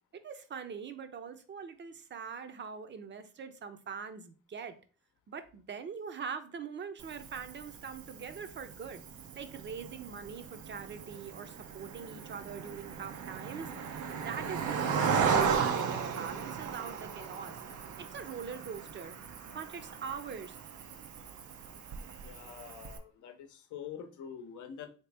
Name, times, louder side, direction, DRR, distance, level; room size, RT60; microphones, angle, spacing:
voice 1, 0.2-4.7 5.3-9.0 9.3-13.7 14.2-17.6 18.0-19.1 19.5-20.6, right 6 dB, 40° right, 0.6 m, -42 dB
Cricket, 7.0-23.0, right 6 dB, 80° right, 0.6 m, -36 dB
voice 2, 22.2-24.9, left 8 dB, 75° left, 0.7 m, -46 dB
3.5 x 2.9 x 3.3 m
cardioid pair, 90°, 30 cm